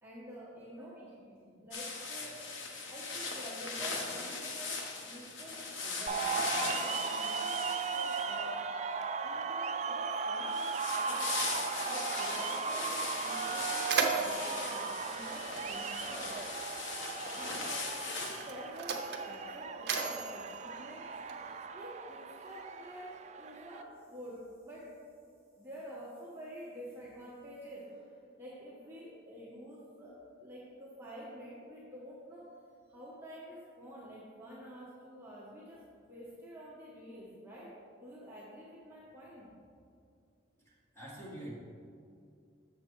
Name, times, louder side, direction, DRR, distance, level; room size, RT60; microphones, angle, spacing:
voice 1, 0.0-2.4 2.9-8.9 9.2-16.3 17.3-17.7 18.2-21.1 21.7-24.9 25.6-28.1 28.4-30.2 30.4-32.5 32.9-37.7 38.0-39.5, equal, 10° right, -8 dB, 1.2 m, -48 dB
sound 1, 1.7-8.5 10.5-18.5, left 3 dB, 80° left, 1.0 m, -39 dB
sound 2, 6.1-23.8, right 5 dB, 35° right, 0.3 m, -37 dB
Mechanisms, 12.9-13.0 13.4-16.1 17.1-17.3 18.1-21.7, right 4 dB, 60° right, 0.7 m, -37 dB
voice 2, 40.6-41.5, right 1 dB, 15° left, -6 dB, 1.6 m, -46 dB
7.0 x 6.6 x 4.5 m, 2.4 s
head